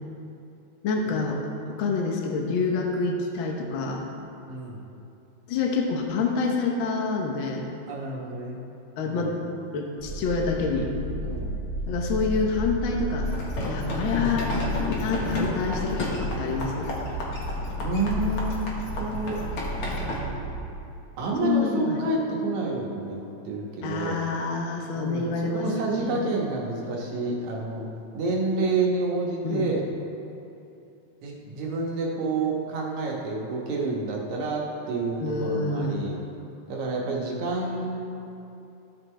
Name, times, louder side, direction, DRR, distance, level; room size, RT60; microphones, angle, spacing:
voice 1, 0.8-1.4 1.7-4.0 5.5-7.7 9.0-9.4 9.7-10.9 11.9-13.3 13.6-14.6 14.9-16.9 21.4-22.0 23.8-25.6 25.9-26.3 29.4-29.7 35.2-36.1, left 4 dB, 75° left, 1 dB, 1.1 m, -27 dB
voice 2, 4.5-4.8 7.9-8.6 9.0-9.4 11.2-11.6 17.8-19.4 21.2-24.2 24.9-27.9 28.1-29.8 31.2-36.2 36.7-38.0, right 3 dB, 70° right, -2 dB, 2.5 m, -29 dB
sound 1, 10.0-20.6, left 1 dB, 40° right, 1.3 m, -32 dB
sound 2, 13.3-20.2, left 1 dB, 55° left, 2.0 m, -33 dB
14.5 x 6.3 x 3.3 m, 2.8 s
omnidirectional pair, 3.5 m